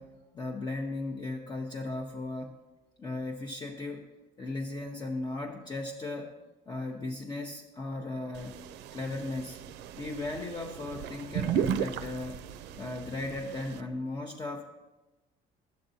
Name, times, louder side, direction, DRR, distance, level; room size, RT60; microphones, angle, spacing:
voice 1, 0.0-2.6 3.0-4.1 4.4-6.3 6.7-8.6 8.9-9.6 10.0-12.4 12.8-14.6, left 2 dB, 25° left, 0 dB, 0.7 m, -36 dB
sound 1, 8.4-13.8, right 9 dB, 85° right, 0.4 m, -35 dB
12.0 x 7.8 x 2.7 m, 1.1 s
cardioid pair, 110°, 17 cm